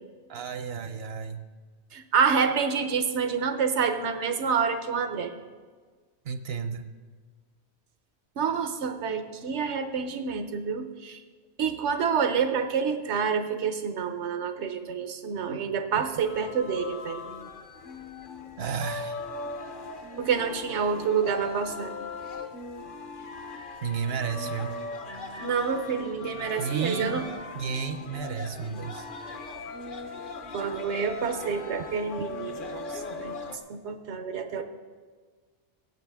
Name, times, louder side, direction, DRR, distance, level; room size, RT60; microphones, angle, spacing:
voice 1, 0.3-1.4 6.2-6.8 15.9-16.0 18.6-19.2 23.8-24.8 26.6-27.3 27.5-29.1, right 6 dB, 70° right, 10 dB, 0.9 m, -32 dB
voice 2, 1.9-5.3 8.4-11.2 11.6-17.2 20.2-21.9 25.4-27.2 30.5-33.3 33.7-34.6, right 6 dB, 85° right, 8 dB, 1.2 m, -28 dB
sound 1, 16.0-33.6, left 3 dB, 55° left, 0.9 m, -39 dB
17.0 x 8.1 x 3.5 m, 1.5 s
omnidirectional pair, 1.1 m